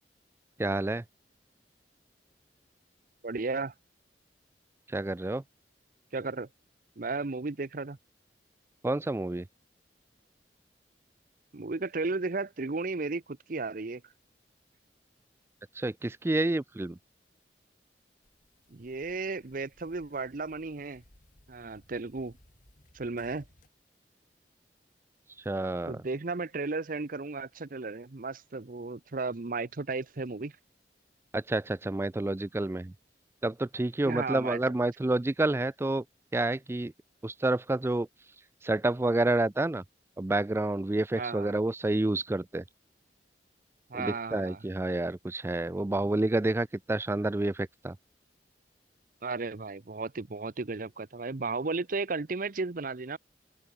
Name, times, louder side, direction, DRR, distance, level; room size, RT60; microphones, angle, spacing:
voice 1, 0.6-1.0 4.9-5.4 8.8-9.5 15.8-17.0 25.5-26.0 31.3-32.9 33.4-36.0 36.3-36.9 37.2-38.1 38.6-39.8 40.2-42.6 43.9-48.0, right 2 dB, 15° right, 0.4 m, -29 dB
voice 2, 3.2-3.7 6.1-6.5 7.0-8.0 11.5-14.0 18.7-21.0 21.5-22.4 22.9-23.4 25.9-30.5 34.0-34.6 41.1-41.5 43.9-44.6 49.2-53.2, right 3 dB, 50° right, 0.8 m, -34 dB
sound 1, 18.2-23.7, left 1 dB, 50° left, 5.9 m, -62 dB
head